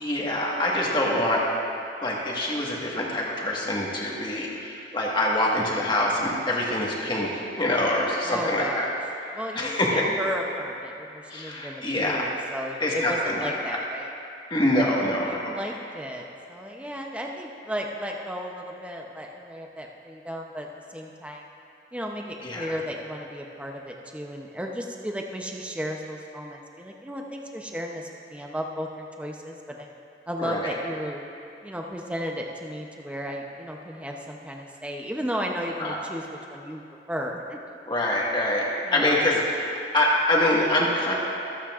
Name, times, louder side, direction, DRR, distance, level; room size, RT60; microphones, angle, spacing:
voice 1, 0.0-1.5 2.0-8.9 9.2-10.1 11.3-12.3 12.8-13.8 14.5-15.5 22.4-22.8 30.4-30.7 35.8-36.0 37.9-41.1, left 1 dB, 25° left, -3 dB, 1.6 m, -25 dB
voice 2, 8.2-8.9 9.3-14.1 15.3-21.4 21.9-29.9 30.3-31.2 31.6-36.2 36.5-36.8 37.1-37.8 38.9-39.2, equal, 5° right, 0 dB, 0.7 m, -34 dB
25.0 x 8.6 x 2.5 m, 2.7 s
head